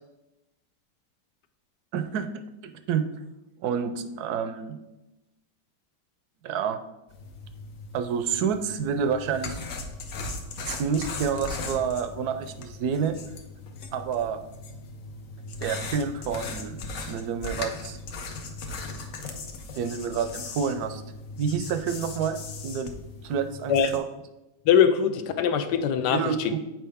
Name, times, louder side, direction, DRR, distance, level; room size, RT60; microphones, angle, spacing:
voice 1, 1.9-2.3 2.6-3.1 3.6-4.8 6.4-6.8 7.9-9.6 10.6-13.2 13.9-14.4 15.6-16.8 17.0-18.0 19.7-21.0 21.4-22.4 22.6-22.9 23.2-24.0 26.1-26.6, right 7 dB, 75° right, 9 dB, 1.0 m, -28 dB
sound 1, 7.1-24.0, left 3 dB, 60° left, 1.1 m, -38 dB
voice 2, 24.7-26.5, left 8 dB, 80° left, 8 dB, 1.2 m, -22 dB
7.6 x 4.7 x 3.4 m, 0.96 s
omnidirectional pair, 1.8 m